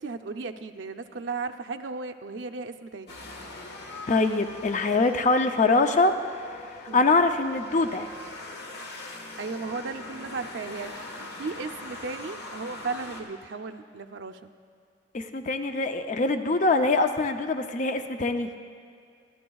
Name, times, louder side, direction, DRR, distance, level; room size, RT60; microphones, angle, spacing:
voice 1, 0.0-3.2 6.9-7.1 9.4-14.5, right 4 dB, 75° right, 8 dB, 0.5 m, -35 dB
sound 1, 3.1-13.2, left 2 dB, 65° left, 1.3 m, -42 dB
voice 2, 4.1-6.1 6.8-8.1 15.1-18.5, left 3 dB, 45° left, 7 dB, 0.5 m, -23 dB
25.5 x 10.5 x 2.3 m, 2.3 s
head